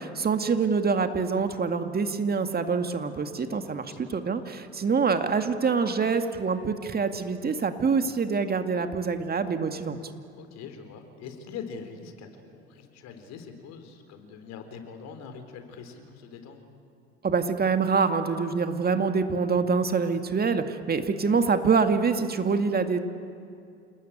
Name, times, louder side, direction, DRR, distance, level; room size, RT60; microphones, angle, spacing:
voice 1, 0.0-10.0 17.2-23.0, right 5 dB, 30° right, 7 dB, 2.1 m, -25 dB
voice 2, 3.1-4.1 10.3-16.6, left 6 dB, 60° left, 7 dB, 4.1 m, -43 dB
29.0 x 19.5 x 9.2 m, 2.5 s
hypercardioid pair, 65°, 31 cm